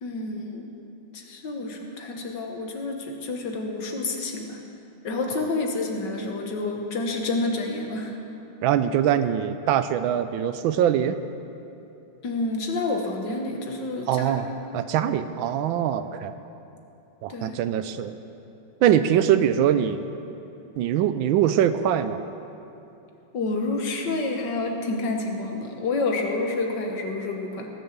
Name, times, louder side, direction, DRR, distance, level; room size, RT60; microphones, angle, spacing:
voice 1, 0.0-0.7 1.1-4.6 5.0-8.2 12.2-14.4 17.3-17.6 23.3-27.7, left 3 dB, 60° left, 2 dB, 1.8 m, -29 dB
voice 2, 8.6-11.2 14.1-14.5 14.7-16.3 17.2-18.2 18.8-20.0 20.8-22.2, right 10 dB, 80° right, 11 dB, 1.3 m, -22 dB
18.0 x 7.0 x 7.3 m, 2.8 s
omnidirectional pair, 2.2 m